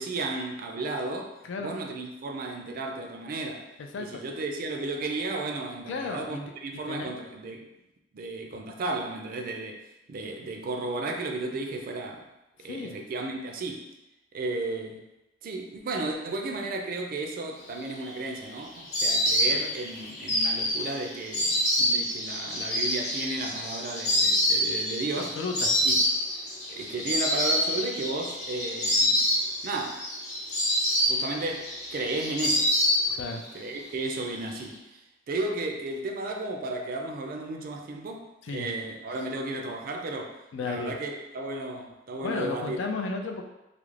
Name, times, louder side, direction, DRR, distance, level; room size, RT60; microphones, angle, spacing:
voice 1, 0.0-3.7 4.0-7.7 8.1-9.8 10.1-12.2 12.6-13.9 14.3-15.0 15.4-25.4 25.8-25.9 26.7-29.3 29.6-30.0 31.1-32.7 33.5-42.8, right 2 dB, 50° right, 3 dB, 0.3 m, -34 dB
voice 2, 3.8-4.2 5.9-6.4 6.7-7.1 12.6-12.9 25.4-25.9 33.1-33.4 38.4-38.7 40.5-41.0 42.2-43.4, left 3 dB, 90° left, 4 dB, 0.3 m, -34 dB
Insect, 17.8-33.5 33.7-34.6, equal, 40° left, 0.7 m, -27 dB
2.4 x 2.0 x 3.1 m, 0.94 s
head